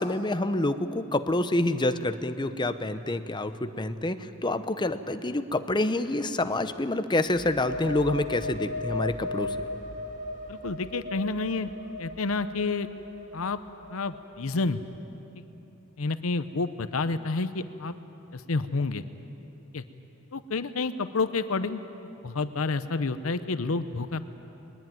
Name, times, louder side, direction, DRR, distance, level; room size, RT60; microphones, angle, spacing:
voice 1, 0.0-9.6, left 2 dB, 20° left, 10 dB, 0.8 m, -27 dB
sound 1, 7.3-14.8, left 2 dB, 40° right, 2.1 m, -37 dB
voice 2, 10.5-11.7 12.0-12.9 13.3-13.6 13.9-14.8 15.4-15.5 16.0-17.9 18.3-19.0 19.7-19.8 20.3-21.8 22.2-24.2, left 3 dB, 80° left, 11 dB, 0.8 m, -29 dB
22.0 x 20.5 x 9.1 m, 2.9 s
head